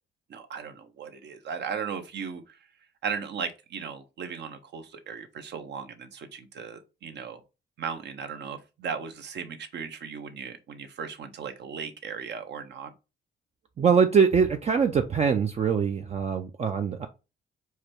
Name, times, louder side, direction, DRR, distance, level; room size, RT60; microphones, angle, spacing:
voice 1, 0.3-2.6 3.0-7.4 7.8-12.9, right 6 dB, 60° right, 0.9 m, -37 dB
voice 2, 13.8-17.1, right 6 dB, 35° right, 0.5 m, -23 dB
4.8 x 2.3 x 4.4 m
cardioid pair, 90°, 20 cm